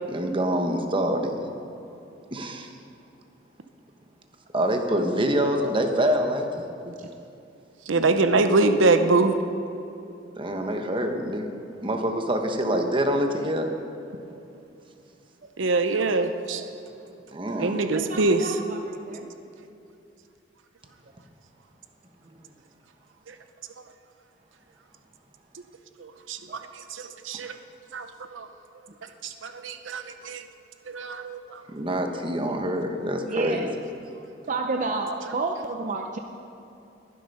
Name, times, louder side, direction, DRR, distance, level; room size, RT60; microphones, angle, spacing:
voice 1, 0.1-1.4 2.3-2.7 4.5-6.6 10.4-11.5 11.8-13.7 17.3-17.8 27.3-27.5 31.7-33.7, equal, 25° right, 5 dB, 1.1 m, -26 dB
voice 2, 7.9-9.3 15.6-16.6 17.6-18.6 23.3-23.4 26.0-26.4 26.8-27.5 27.9-28.5 29.2-30.4 30.9-31.6, right 3 dB, 85° right, 8 dB, 0.7 m, -24 dB
voice 3, 17.8-19.3 26.5-26.6 33.3-33.7 34.5-36.2, right 3 dB, 45° right, 3 dB, 0.6 m, -31 dB
21.5 x 7.8 x 5.5 m, 2.8 s
head